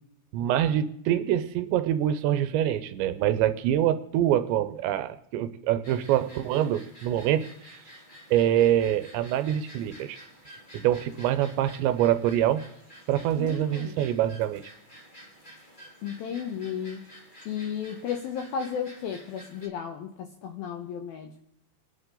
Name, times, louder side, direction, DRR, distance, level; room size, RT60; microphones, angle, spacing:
voice 1, 0.3-7.8 8.3-10.2 10.7-12.6 13.1-14.7, right 11 dB, 80° right, 12 dB, 2.8 m, -25 dB
sound 1, 5.8-19.7, equal, 55° left, 0.5 m, -50 dB
voice 2, 13.4-14.0 16.0-17.0 17.5-21.3, left 7 dB, 75° left, 6 dB, 2.3 m, -34 dB
28.5 x 11.0 x 3.9 m, 0.75 s
omnidirectional pair, 5.4 m